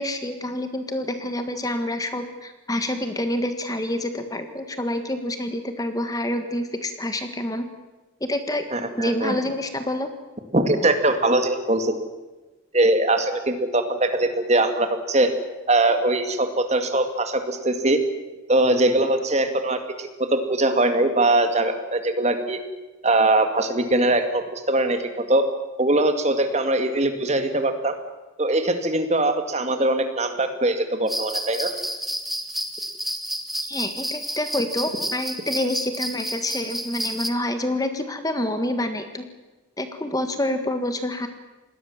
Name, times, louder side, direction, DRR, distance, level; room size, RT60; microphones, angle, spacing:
voice 1, 0.0-7.7 8.2-8.6 9.0-10.1 33.7-39.2 39.8-41.3, left 1 dB, 15° left, 8 dB, 1.6 m, -27 dB
voice 2, 8.7-9.4 10.5-12.1 12.7-15.3 15.7-18.0 18.5-22.6 23.0-25.5 25.8-28.0 28.4-31.7, right 2 dB, 35° right, 7 dB, 2.3 m, -21 dB
sound 1, 31.1-37.3, equal, ahead, 1.5 m, -30 dB
27.5 x 20.5 x 7.4 m, 1.2 s
head